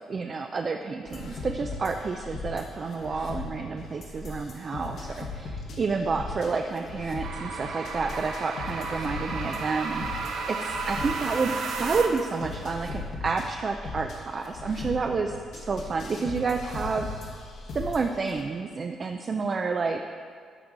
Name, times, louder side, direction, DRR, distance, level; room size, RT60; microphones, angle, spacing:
voice 1, 0.0-11.5 11.8-17.3 17.7-20.0, right 4 dB, 40° right, 5 dB, 0.4 m, -30 dB
sound 1, 1.1-18.4, left 3 dB, 70° left, 1.4 m, -38 dB
sound 2, 7.2-12.4, right 4 dB, 75° right, 0.8 m, -33 dB
12.5 x 4.6 x 3.8 m, 2.1 s
cardioid pair, 90°, 0 cm